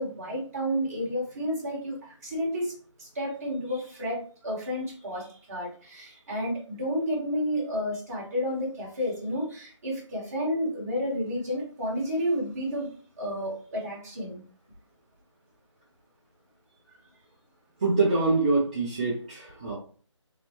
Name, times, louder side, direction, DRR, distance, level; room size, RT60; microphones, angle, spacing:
voice 1, 0.0-2.0 2.2-2.7 3.0-4.2 4.4-12.9 13.2-14.4, equal, 30° right, -4 dB, 1.9 m, -31 dB
voice 2, 17.8-19.7, right 3 dB, 15° right, -7 dB, 0.6 m, -25 dB
4.2 x 3.9 x 3.1 m, 0.41 s
figure-of-eight pair, 165°, 16 cm